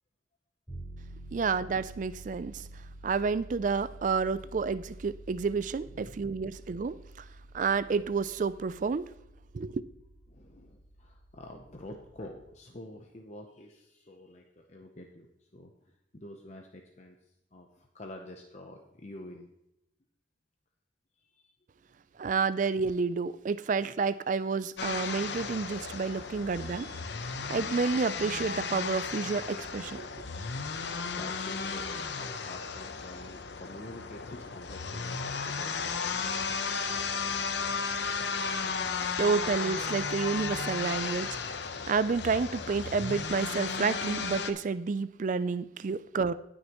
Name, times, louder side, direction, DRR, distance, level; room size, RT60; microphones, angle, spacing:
sound 1, 0.7-12.5, right 1 dB, ahead, 3.9 m, -49 dB
voice 1, 1.3-2.6 3.0-7.0 7.5-9.1 9.5-9.8 22.2-27.0 27.5-30.1 39.2-41.4 41.9-46.3, right 5 dB, 45° right, 16 dB, 0.3 m, -30 dB
voice 2, 5.9-6.3 10.3-15.7 16.1-17.2 17.5-19.5 21.2-21.5 30.7-36.3, left 1 dB, 40° left, 2 dB, 0.7 m, -48 dB
sound 2, 24.8-44.5, left 5 dB, 65° left, 0.7 m, -34 dB
18.0 x 6.4 x 3.0 m, 0.83 s
head